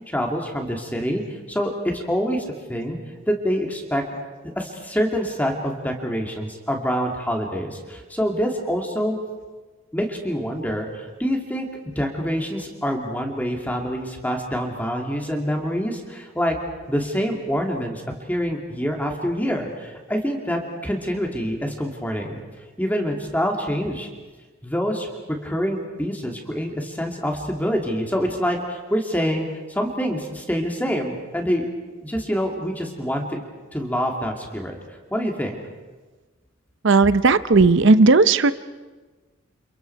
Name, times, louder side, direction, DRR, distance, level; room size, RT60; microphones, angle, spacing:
voice 1, 0.1-3.0 3.3-4.0 4.6-9.2 9.9-11.7 12.0-16.6 16.9-18.0 18.3-22.4 22.8-24.1 24.6-25.1 25.4-31.7 32.0-33.4 33.7-34.8 35.1-35.6, equal, 10° left, 2 dB, 2.6 m, -26 dB
voice 2, 36.8-38.6, right 3 dB, 60° right, 14 dB, 0.7 m, -15 dB
29.0 x 29.0 x 4.7 m, 1.3 s
head